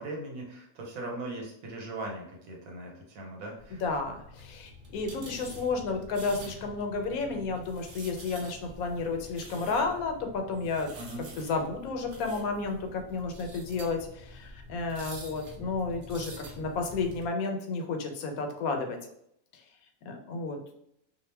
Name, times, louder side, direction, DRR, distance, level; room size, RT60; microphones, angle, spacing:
voice 1, 0.0-3.8 10.9-11.3, right 2 dB, 80° right, 0 dB, 1.2 m, -39 dB
sound 1, 3.6-17.2, equal, 50° right, 0.7 m, -47 dB
voice 2, 3.8-10.9 11.4-19.0 20.1-20.6, left 4 dB, 85° left, 4 dB, 1.0 m, -32 dB
2.5 x 2.0 x 3.2 m, 0.72 s
omnidirectional pair, 1.5 m